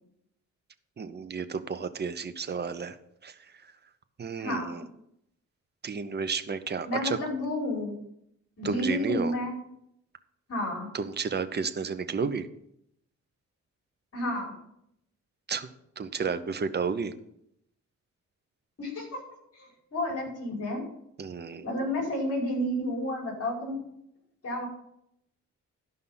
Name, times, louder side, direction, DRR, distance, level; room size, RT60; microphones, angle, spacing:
voice 1, 1.0-3.0 3.2-3.7 4.2-4.8 5.8-7.2 8.6-9.3 10.9-12.5 15.5-15.7 16.0-17.1 21.2-21.7, right 5 dB, 35° right, 10 dB, 0.8 m, -32 dB
voice 2, 4.4-4.8 6.8-7.9 8.6-9.6 10.5-10.9 14.1-14.5 18.8-19.1 19.5-20.8 21.6-23.8 24.4-24.7, left 1 dB, 55° left, -1 dB, 5.0 m, -31 dB
12.5 x 5.6 x 5.6 m, 0.76 s
cardioid pair, 115°, 29 cm